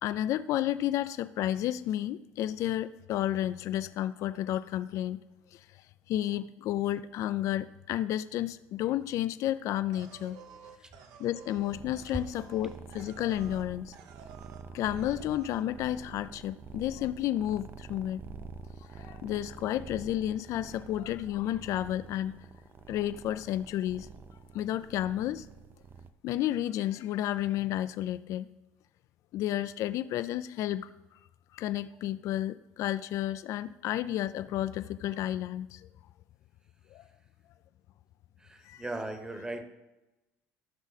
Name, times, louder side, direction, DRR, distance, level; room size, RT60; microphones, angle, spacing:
voice 1, 0.0-5.2 5.5-10.4 11.2-14.0 14.7-18.2 18.8-22.4 22.9-24.1 24.5-25.5 26.2-28.5 29.3-30.9 31.5-35.9 36.9-37.0 38.6-38.8, left 12 dB, 60° left, 13 dB, 0.3 m, -31 dB
sound 1, 9.9-13.7 13.9-14.7 14.9-15.6, right 7 dB, 75° right, 1.0 m, -52 dB
sound 2, 11.5-26.1, right 5 dB, 35° right, 0.5 m, -48 dB
voice 2, 38.4-39.6, right 2 dB, 10° right, 8 dB, 1.0 m, -38 dB
14.0 x 6.2 x 4.1 m, 1.0 s
supercardioid pair, 105°, 6 cm